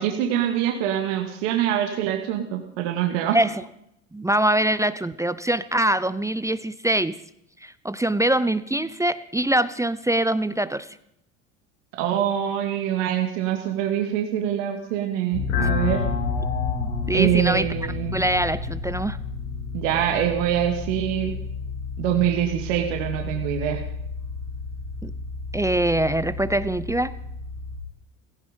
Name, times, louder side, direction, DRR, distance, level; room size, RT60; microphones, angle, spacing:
voice 1, 0.0-3.4 12.0-16.0 17.1-18.1 19.7-21.3 22.0-23.8, right 10 dB, 70° right, 3 dB, 2.3 m, -24 dB
voice 2, 4.1-7.2 7.6-10.9 16.7-17.7 18.1-19.2 25.0-25.1 25.5-27.1, right 1 dB, 10° right, 14 dB, 0.8 m, -23 dB
sound 1, 15.3-27.8, left 4 dB, 80° left, 5.1 m, -30 dB
17.0 x 16.0 x 5.3 m, 0.75 s
hypercardioid pair, 75°, 38 cm